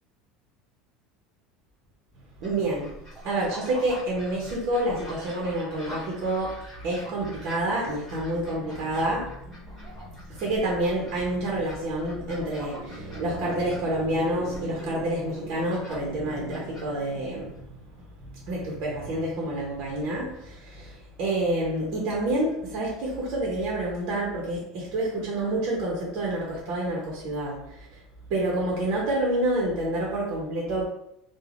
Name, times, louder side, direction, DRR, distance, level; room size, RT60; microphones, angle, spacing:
sound 1, 2.4-17.6, equal, 15° left, 1.1 m, -45 dB
voice 1, 2.4-2.9 3.2-17.7 18.2-27.9 28.3-30.8, right 1 dB, 50° right, -3 dB, 0.7 m, -28 dB
3.2 x 2.1 x 2.4 m, 0.79 s
cardioid pair, 170°, 0 cm